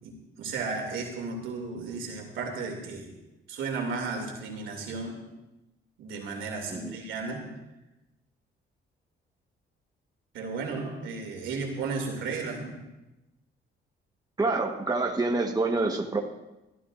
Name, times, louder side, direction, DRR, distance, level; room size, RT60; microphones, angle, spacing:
voice 1, 0.0-3.1 3.5-5.2 6.0-7.4 10.3-12.8, right 4 dB, 80° right, 2 dB, 2.8 m, -34 dB
voice 2, 14.4-16.2, right 3 dB, 20° right, 2 dB, 1.3 m, -27 dB
25.0 x 13.0 x 2.6 m, 0.99 s
cardioid pair, 90°, 20 cm